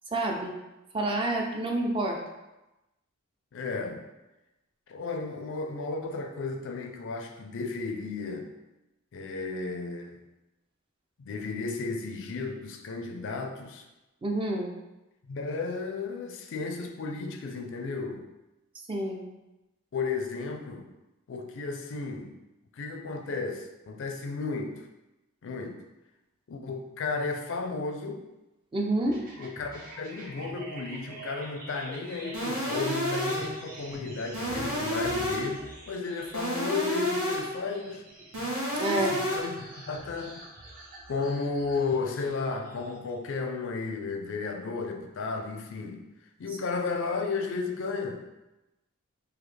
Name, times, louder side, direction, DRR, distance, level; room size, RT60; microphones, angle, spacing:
voice 1, 0.1-0.5 0.9-2.2 14.2-14.7 18.9-19.2 28.7-29.2 38.8-39.2, right 1 dB, 25° right, 1 dB, 0.4 m, -28 dB
voice 2, 3.5-4.1 4.9-8.5 9.1-10.2 11.2-13.9 15.3-18.3 19.9-20.9 21.3-22.4 22.7-24.9 25.4-25.8 26.5-28.2 29.4-38.0 39.1-39.6 39.9-40.4 41.1-46.1 46.4-48.3, left 4 dB, 60° left, 4 dB, 0.4 m, -33 dB
sound 1, 29.0-43.1, right 2 dB, 40° right, 0.9 m, -46 dB
sound 2, 32.3-33.6 34.3-35.6 36.3-37.6 38.3-39.6, equal, 85° right, 1.5 m, -30 dB
3.9 x 2.7 x 3.2 m, 0.98 s
head